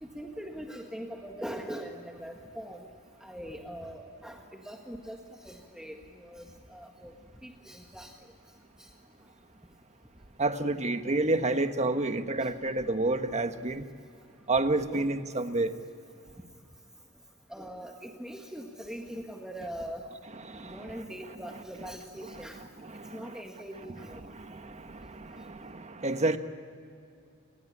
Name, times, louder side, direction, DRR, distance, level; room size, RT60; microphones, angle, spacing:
voice 1, 0.0-2.9 3.2-5.2 5.4-7.1 7.4-8.1 8.8-8.9 14.9-15.1 17.5-20.1 20.6-22.6 23.1-24.2, equal, 5° right, 2 dB, 1.6 m, -42 dB
voice 2, 10.4-13.8 14.5-15.7 20.4-21.0 22.8-23.4 24.2-26.4, right 2 dB, 35° right, 8 dB, 1.3 m, -30 dB
29.0 x 20.0 x 9.9 m, 2.5 s
head